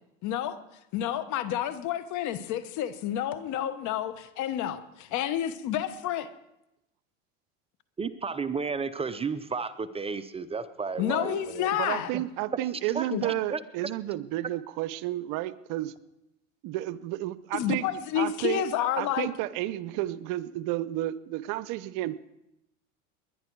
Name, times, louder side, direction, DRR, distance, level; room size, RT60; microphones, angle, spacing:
voice 1, 0.2-0.6 0.9-6.3 11.0-12.1 13.1-13.2 17.5-19.3, left 10 dB, 55° left, 12 dB, 1.2 m, -30 dB
voice 2, 8.0-11.7 12.1-12.2 12.9-13.6, right 5 dB, 15° right, 12 dB, 0.5 m, -33 dB
voice 3, 11.8-15.9 16.6-17.9 18.2-18.6 19.0-22.1, right 15 dB, 65° right, 17 dB, 0.7 m, -31 dB
20.5 x 10.5 x 4.6 m, 0.87 s
supercardioid pair, 110°, 35 cm